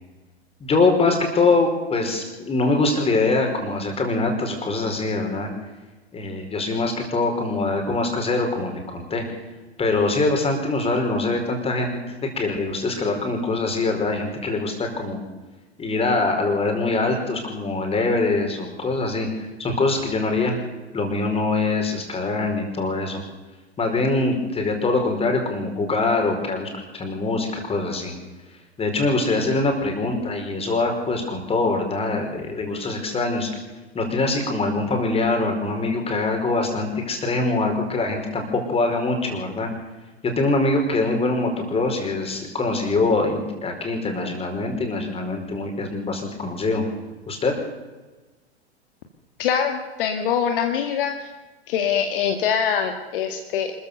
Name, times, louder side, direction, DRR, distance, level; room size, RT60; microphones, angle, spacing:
voice 1, 0.6-5.5 6.1-9.2 9.8-15.2 15.8-20.6 20.9-23.2 23.8-28.1 28.8-33.5 33.9-39.7 40.2-46.8 47.3-47.5, left 3 dB, 20° left, 3 dB, 5.2 m, -23 dB
voice 2, 49.4-51.3 51.7-53.7, left 8 dB, 55° left, 5 dB, 2.1 m, -23 dB
26.0 x 14.5 x 6.9 m, 1.2 s
figure-of-eight pair, 95°, 32 cm